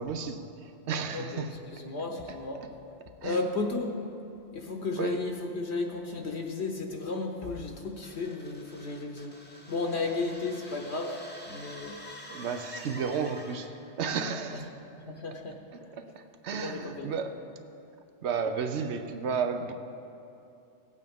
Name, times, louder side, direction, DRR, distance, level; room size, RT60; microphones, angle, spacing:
voice 1, 0.0-1.6 3.2-3.4 5.0-5.2 12.3-14.7 15.7-17.4 18.2-19.7, right 6 dB, 70° right, 8 dB, 1.0 m, -33 dB
voice 2, 1.1-2.6 3.2-4.0 4.5-9.4 9.7-11.1 11.5-12.0 14.5-14.6 15.0-15.6 16.5-17.2, left 3 dB, 65° left, 2 dB, 1.1 m, -33 dB
sound 1, 8.0-13.9, left 1 dB, 10° left, 0.8 m, -47 dB
17.0 x 8.4 x 3.6 m, 2.7 s
omnidirectional pair, 1.2 m